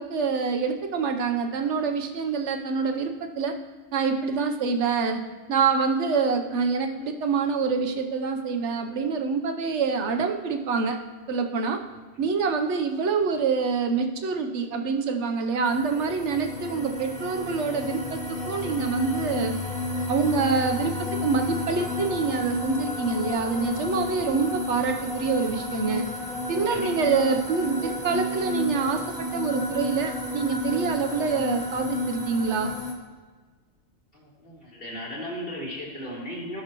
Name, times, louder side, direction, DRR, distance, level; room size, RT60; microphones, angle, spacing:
voice 1, 0.0-3.6 3.9-5.2 5.5-11.0 11.3-11.8 12.2-19.5 20.1-26.1 26.5-32.7, right 5 dB, 70° right, 5 dB, 1.1 m, -26 dB
sound 1, 15.6-32.9, left 2 dB, 5° left, 1.6 m, -31 dB
voice 2, 34.1-36.6, equal, 50° left, -6 dB, 3.5 m, -36 dB
16.5 x 6.3 x 3.0 m, 1.4 s
omnidirectional pair, 1.3 m